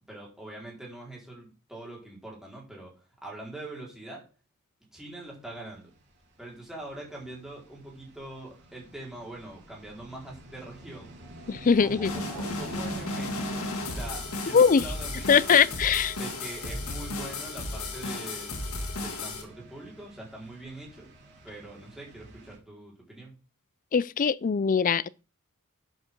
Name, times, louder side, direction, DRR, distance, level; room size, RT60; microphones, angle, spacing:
voice 1, 0.1-4.2 4.9-5.9 6.4-11.2 11.8-15.6 16.2-18.6 18.9-21.1 21.4-23.3, right 2 dB, ahead, 4.6 m, -43 dB
sound 1, 5.9-22.6, right 1 dB, 50° right, 3.8 m, -47 dB
voice 2, 11.5-12.1 14.5-14.8 15.3-16.2 23.9-25.1, left 6 dB, 40° left, 0.4 m, -21 dB
sound 2, 12.0-19.4, left 2 dB, 70° left, 2.5 m, -34 dB
11.0 x 7.9 x 3.8 m
head